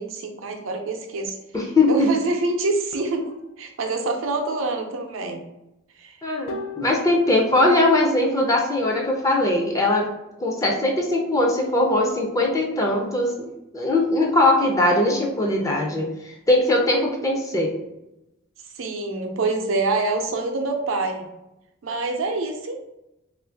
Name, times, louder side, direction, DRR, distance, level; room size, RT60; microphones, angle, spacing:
voice 1, 0.0-1.4 1.6-5.4 5.9-6.2 18.6-21.3 21.8-22.7, right 3 dB, 80° right, 3 dB, 0.6 m, -26 dB
voice 2, 1.5-2.1 6.2-10.1 10.4-17.7, left 2 dB, 15° left, 0 dB, 0.4 m, -21 dB
sound 1, 2.9-3.5 6.5-7.4, left 2 dB, 85° left, 0.4 m, -37 dB
3.1 x 2.5 x 3.4 m, 0.91 s
head